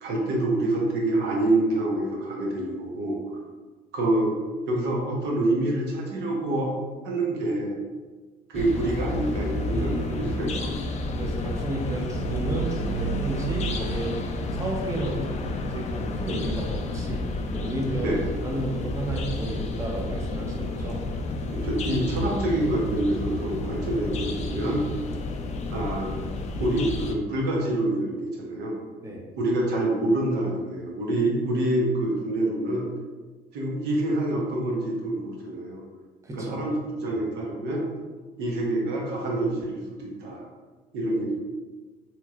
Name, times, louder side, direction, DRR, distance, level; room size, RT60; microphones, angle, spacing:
voice 1, 0.0-3.2 3.9-4.3 4.7-6.7 7.0-7.7 8.5-10.7 18.0-18.2 21.5-24.8 25.7-26.2 26.6-28.8 29.4-32.9 33.5-35.8 36.4-37.9 38.4-40.4 40.9-41.3, right 1 dB, 85° right, -2 dB, 0.8 m, -26 dB
sound 1, 8.5-27.1, left 2 dB, 40° left, 0.4 m, -30 dB
voice 2, 9.7-10.4 11.2-14.2 14.4-17.2 17.5-21.0 29.0-29.2 36.2-36.5 37.1-37.2, right 1 dB, 20° right, -1 dB, 0.6 m, -32 dB
3.0 x 2.9 x 2.4 m, 1.3 s
cardioid pair, 110°, 17 cm